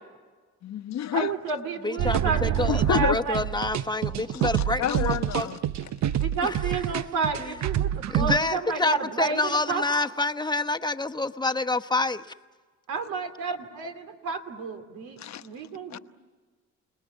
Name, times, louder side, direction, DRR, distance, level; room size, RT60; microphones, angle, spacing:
voice 1, 0.6-1.3 2.7-3.2 4.3-4.4 4.8-5.6 15.2-15.4 15.9-16.0, left 9 dB, 65° left, 1.1 m, -28 dB
voice 2, 1.1-3.5 6.2-9.8 12.9-16.0, right 5 dB, 90° right, 2.7 m, -31 dB
voice 3, 1.8-5.5 6.4-6.7 7.4-7.5 8.1-12.3, left 3 dB, 15° left, 1.0 m, -28 dB
sound 1, 2.0-8.4, right 11 dB, 65° right, 0.7 m, -27 dB
29.0 x 20.0 x 9.3 m
cardioid pair, 90°, 30 cm